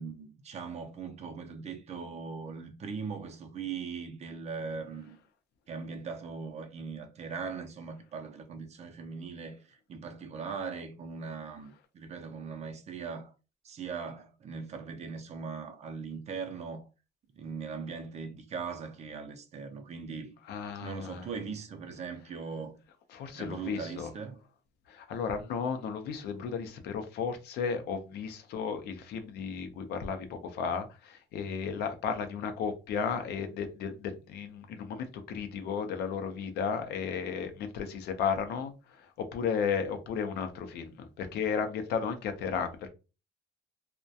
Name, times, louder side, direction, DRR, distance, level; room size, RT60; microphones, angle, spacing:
voice 1, 0.0-5.2 5.7-13.3 13.6-16.9 17.4-20.3 20.8-22.7 23.3-24.4, right 5 dB, 40° right, 0.5 m, -40 dB
voice 2, 20.5-21.2 23.1-24.1 24.9-38.7 39.2-42.9, left 6 dB, 75° left, 0.5 m, -34 dB
2.3 x 2.1 x 2.6 m
cardioid pair, 110°, 17 cm